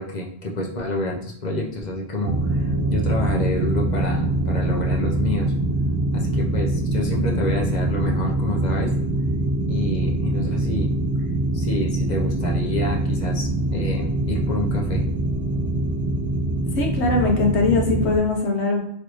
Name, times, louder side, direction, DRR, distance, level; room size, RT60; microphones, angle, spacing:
voice 1, 0.0-5.5 6.1-8.9 9.7-10.9 11.5-15.0, left 1 dB, 50° left, 0 dB, 0.6 m, -28 dB
sound 1, 2.2-18.2, right 1 dB, 85° right, 0.9 m, -24 dB
voice 2, 16.8-18.8, left 3 dB, 75° left, 1 dB, 1.1 m, -21 dB
3.2 x 2.5 x 3.0 m, 0.73 s
omnidirectional pair, 1.1 m